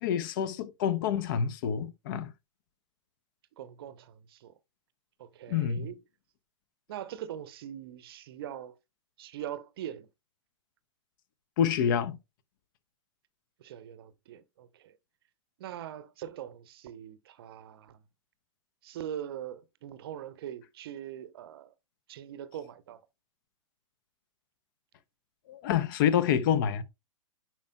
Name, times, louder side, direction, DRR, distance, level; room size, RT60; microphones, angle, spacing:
voice 1, 0.0-2.3 5.5-5.9 11.6-12.2 25.5-26.8, left 8 dB, 40° left, 0.7 m, -27 dB
voice 2, 3.6-4.6 5.2-6.0 6.9-8.8 9.2-10.1 13.6-15.0 15.6-18.0 18.8-21.7 22.1-23.0, right 10 dB, 45° right, 0.7 m, -42 dB
10.5 x 4.4 x 2.2 m
figure-of-eight pair, 105°, 17 cm